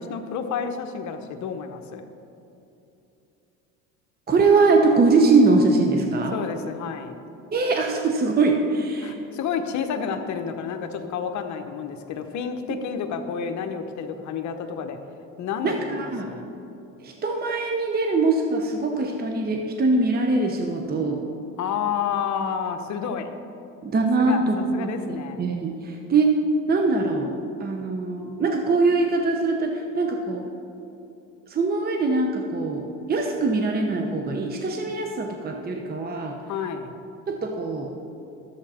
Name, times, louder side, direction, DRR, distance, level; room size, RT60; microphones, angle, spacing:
voice 1, 0.0-2.0 6.3-7.2 9.0-15.0 15.4-16.6 21.5-23.3 24.2-24.4 24.7-25.4 36.5-36.9, left 7 dB, 55° left, 6 dB, 1.0 m, -30 dB
voice 2, 4.3-6.4 7.5-9.2 15.6-16.3 17.0-21.2 23.8-26.4 26.7-27.3 27.6-30.5 31.5-36.4 37.3-37.9, right 3 dB, 25° right, 3 dB, 0.9 m, -22 dB
11.5 x 7.5 x 4.3 m, 2.8 s
supercardioid pair, 95°, 35 cm